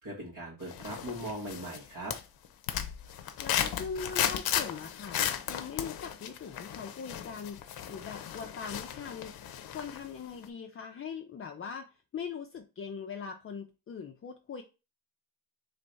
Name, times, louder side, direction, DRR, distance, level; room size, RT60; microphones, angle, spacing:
voice 1, 0.0-2.1, right 1 dB, 55° right, -6 dB, 1.8 m, -39 dB
sound 1, 0.7-1.8 2.1-10.1 10.4-10.5, left 9 dB, 70° left, 0.7 m, -35 dB
voice 2, 3.4-5.2 5.5-7.6 7.9-9.3 9.7-14.6, left 6 dB, 35° left, 3 dB, 0.5 m, -41 dB
3.3 x 3.2 x 4.0 m, 0.30 s
cardioid pair, 90°, 38 cm